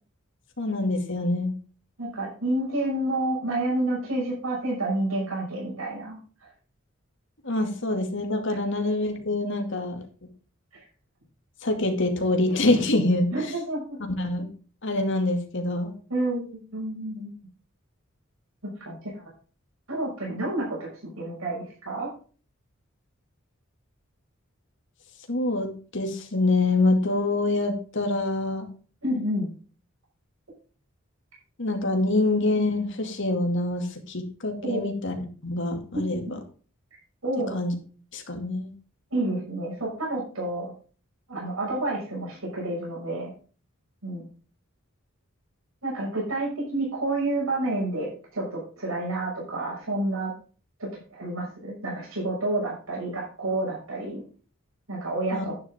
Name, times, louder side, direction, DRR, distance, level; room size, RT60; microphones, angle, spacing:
voice 1, 0.6-1.5 7.4-10.0 11.6-13.5 14.0-14.5 14.8-15.9 25.3-28.7 31.6-35.2 35.4-36.4 37.5-37.8 38.1-38.7 55.3-55.4, left 2 dB, 60° left, 4 dB, 2.5 m, -25 dB
voice 2, 2.0-6.5 10.7-10.8 13.3-14.0 16.1-17.3 18.6-19.3 19.9-22.1 29.0-29.5 34.6-34.9 37.2-37.6 39.1-40.7 41.3-43.3 44.0-44.3 45.8-50.3 50.8-54.2 54.9-55.5, right 1 dB, 80° right, -3 dB, 6.1 m, -29 dB
10.5 x 10.5 x 3.7 m, 0.39 s
head